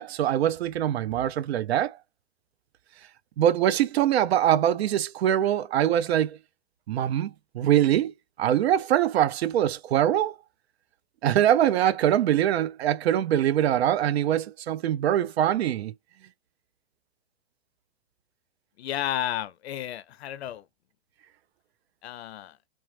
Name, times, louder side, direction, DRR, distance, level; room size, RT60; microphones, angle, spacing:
voice 1, 0.0-2.0 3.4-6.4 6.9-8.1 8.4-10.4 11.2-15.9, right 11 dB, 80° right, 0.5 m, -23 dB
voice 2, 18.8-20.6 22.0-22.6, left 11 dB, 90° left, 0.6 m, -32 dB
3.0 x 2.0 x 3.1 m
supercardioid pair, 175°, 31 cm